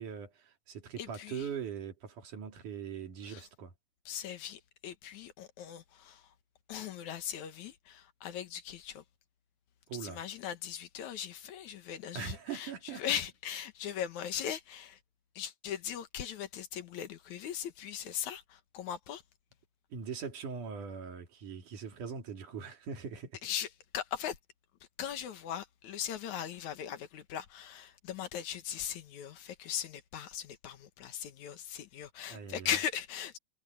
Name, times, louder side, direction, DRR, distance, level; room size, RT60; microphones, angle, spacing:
voice 1, 0.0-3.7 9.9-10.2 12.1-13.0 19.9-23.4 32.3-32.7, right 6 dB, 90° right, 4.3 m, -41 dB
voice 2, 1.0-1.5 3.2-3.5 4.1-6.3 6.7-9.0 9.9-15.0 15.4-19.2 23.4-24.4 25.0-33.4, left 9 dB, 75° left, 2.7 m, -39 dB
omnidirectional pair, 3.5 m